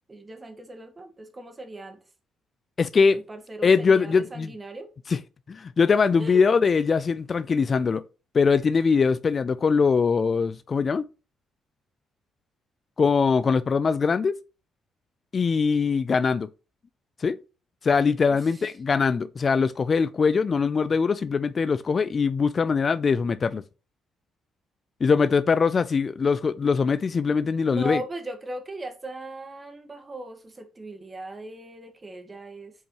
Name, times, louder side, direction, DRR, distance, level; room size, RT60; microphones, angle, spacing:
voice 1, 0.1-2.0 3.1-4.9 6.2-6.4 18.3-18.4 27.7-32.7, right 2 dB, 25° right, 1.6 m, -38 dB
voice 2, 2.8-3.2 3.6-4.5 5.1-5.2 5.5-8.0 8.3-11.0 13.0-14.3 15.3-16.5 17.2-17.4 17.8-23.6 25.0-28.0, left 5 dB, 40° left, 0.4 m, -22 dB
7.2 x 5.3 x 3.0 m
cardioid pair, 90°, 0 cm